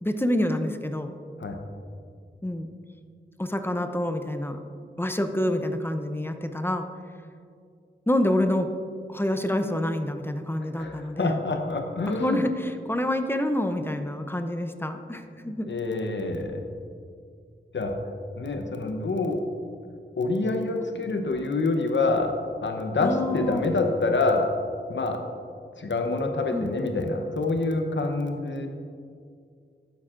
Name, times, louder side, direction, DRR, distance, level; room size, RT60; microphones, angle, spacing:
voice 1, 0.0-1.2 2.4-2.7 3.4-4.6 5.0-6.9 8.1-8.7 9.1-11.4 12.1-15.7 23.0-23.7 26.5-26.7, left 1 dB, 10° left, 7 dB, 0.6 m, -27 dB
voice 2, 10.7-12.4 15.4-16.6 17.7-17.9 18.4-19.4 20.2-22.3 22.6-24.5 24.9-25.2 25.8-28.7, left 3 dB, 75° left, 4 dB, 0.9 m, -26 dB
11.5 x 9.2 x 2.5 m, 2.3 s
wide cardioid pair, 85°, 19 cm